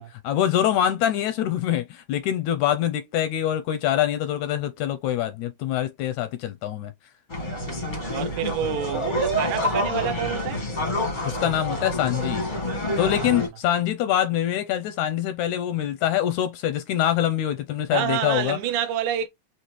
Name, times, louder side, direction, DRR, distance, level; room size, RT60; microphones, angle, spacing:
voice 1, 0.0-6.9 11.3-12.5 13.0-18.6, left 11 dB, 80° left, 1.7 m, -24 dB
sound 1, 7.3-13.5, left 1 dB, 40° left, 0.6 m, -27 dB
voice 2, 7.4-10.7 13.0-13.4 17.9-19.3, right 10 dB, 80° right, 2.1 m, -29 dB
5.7 x 2.9 x 3.0 m
omnidirectional pair, 3.7 m